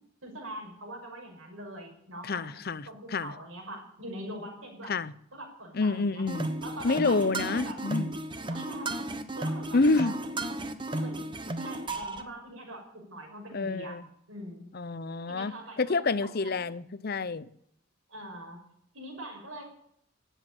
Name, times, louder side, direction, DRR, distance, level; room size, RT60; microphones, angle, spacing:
voice 1, 0.2-5.0 5.3-6.2 6.6-7.8 8.5-10.3 10.9-14.0 14.3-14.7 15.3-16.6 18.1-18.6 18.9-19.6, right 1 dB, 85° right, 6.0 m, -43 dB
voice 2, 2.2-3.3 4.9-5.1 5.7-6.5 6.8-8.1 9.7-10.1 13.5-14.0 14.7-17.5, left 3 dB, 50° left, 0.6 m, -28 dB
sound 1, 6.3-12.2, right 1 dB, 25° right, 1.2 m, -34 dB
18.0 x 8.3 x 9.0 m
head